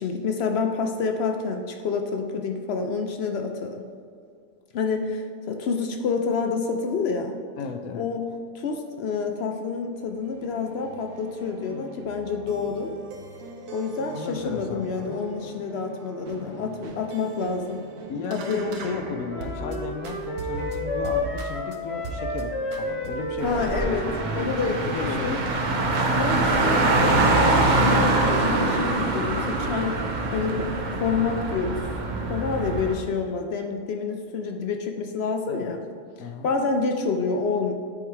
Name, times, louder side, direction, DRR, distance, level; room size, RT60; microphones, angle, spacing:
voice 1, 0.0-3.8 4.7-7.3 7.9-8.3 8.5-12.9 13.7-17.8 18.3-18.6 23.4-24.1 24.4-25.4 26.1-30.0 30.3-31.8 32.2-35.8 36.4-37.7, left 5 dB, 65° left, 4 dB, 0.6 m, -28 dB
voice 2, 7.6-8.1 14.1-15.2 18.1-23.9 24.8-25.6 35.5-35.7 36.2-36.5, left 5 dB, 80° left, 6 dB, 1.0 m, -34 dB
sound 1, 10.0-19.8 20.0-21.8 22.0-22.4 22.7-23.5, right 2 dB, 75° right, 1.1 m, -39 dB
sound 2, 19.3-24.4, left 1 dB, 25° left, 1.0 m, -31 dB
Car, 23.4-32.9, right 2 dB, 55° right, 0.5 m, -24 dB
8.6 x 4.5 x 3.2 m, 2.2 s
omnidirectional pair, 1.5 m